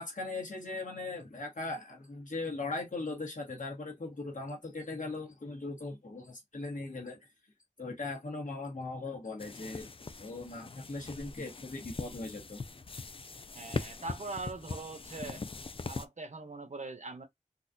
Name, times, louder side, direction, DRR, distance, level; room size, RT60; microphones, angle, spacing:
voice 1, 0.0-7.2 7.8-9.9 10.2-12.6, left 3 dB, 75° left, 1.3 m, -39 dB
sound 1, 9.4-16.1, left 4 dB, 45° left, 0.4 m, -41 dB
voice 2, 13.5-15.4 15.9-17.3, right 3 dB, 65° right, 0.8 m, -41 dB
4.0 x 2.3 x 2.6 m
wide cardioid pair, 40°, 13 cm